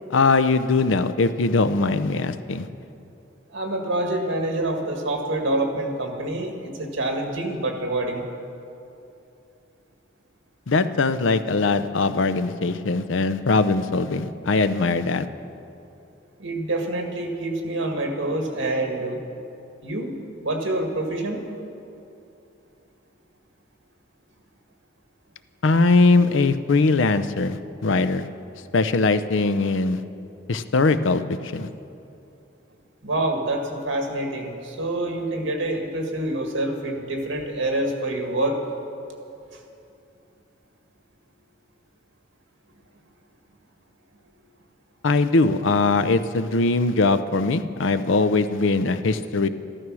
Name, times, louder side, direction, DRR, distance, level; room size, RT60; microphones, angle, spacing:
voice 1, 0.1-2.7 10.7-15.3 25.6-27.6 27.8-28.3 28.7-30.0 30.5-31.7 45.0-49.5, left 3 dB, 80° left, 12 dB, 0.6 m, -21 dB
voice 2, 3.5-8.2 16.4-19.2 19.8-20.2 20.4-21.4 33.0-38.6 39.5-39.6, right 1 dB, 85° right, 3 dB, 1.9 m, -26 dB
14.0 x 12.5 x 6.2 m, 2.7 s
head